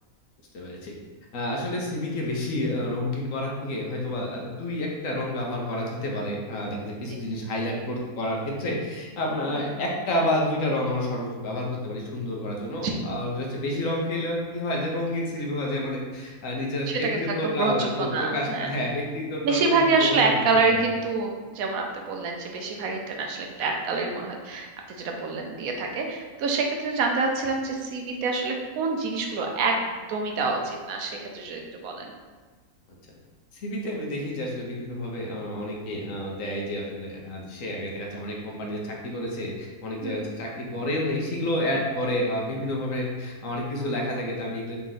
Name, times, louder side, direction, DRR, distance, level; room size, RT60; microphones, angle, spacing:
voice 1, 0.5-0.9 1.3-20.8 33.5-44.8, left 1 dB, 65° left, -2 dB, 1.1 m, -29 dB
voice 2, 16.9-18.7 19.4-32.1 40.0-40.3, right 3 dB, 75° right, 2 dB, 1.0 m, -26 dB
4.1 x 3.0 x 3.8 m, 1.4 s
omnidirectional pair, 1.6 m